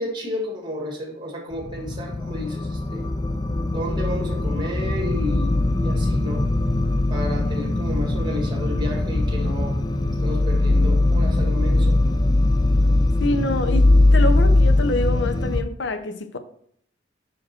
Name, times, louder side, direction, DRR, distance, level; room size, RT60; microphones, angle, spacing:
voice 1, 0.0-3.1 3.7-6.5 7.1-9.8 10.2-12.0, left 1 dB, 25° right, 1.7 m, -32 dB
sound 1, 1.6-15.6, left 2 dB, 20° left, 0.4 m, -20 dB
voice 2, 13.2-16.4, left 2 dB, 70° left, 0.6 m, -26 dB
6.0 x 4.9 x 4.3 m
head